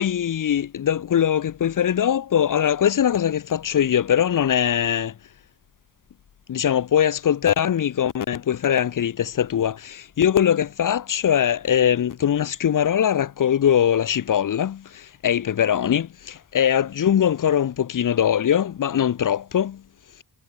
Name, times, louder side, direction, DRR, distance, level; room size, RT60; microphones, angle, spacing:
voice 1, 0.0-5.1 6.5-19.8, left 9 dB, 55° left, 0.9 m, -21 dB
wide cardioid pair, 170°, 39 cm